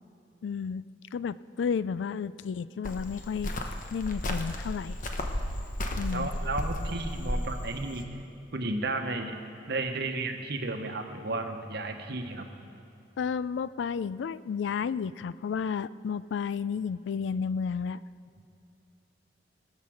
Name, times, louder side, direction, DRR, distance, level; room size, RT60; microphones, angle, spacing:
voice 1, 0.4-0.8 1.1-3.5 3.9-5.0 6.0-6.3 13.2-18.0, left 6 dB, 75° left, 17 dB, 0.3 m, -32 dB
Cricket, 2.8-8.0, left 1 dB, 45° left, 1.0 m, -33 dB
voice 2, 5.8-8.1 8.5-9.4 9.7-12.5, right 2 dB, 65° right, 5 dB, 1.1 m, -33 dB
20.5 x 7.4 x 6.4 m, 2.6 s
head